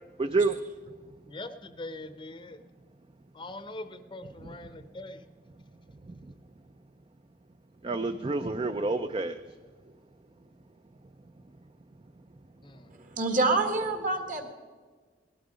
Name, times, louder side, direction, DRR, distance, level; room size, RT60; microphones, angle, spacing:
voice 1, 0.2-0.6 4.4-4.6 7.8-9.4, right 3 dB, 30° right, 8 dB, 0.5 m, -28 dB
voice 2, 1.3-2.6 3.3-5.3 12.6-12.9, left 2 dB, 30° left, 11 dB, 0.7 m, -42 dB
voice 3, 13.0-14.5, right 3 dB, 45° right, 6 dB, 1.8 m, -27 dB
18.5 x 12.0 x 5.0 m, 1.4 s
head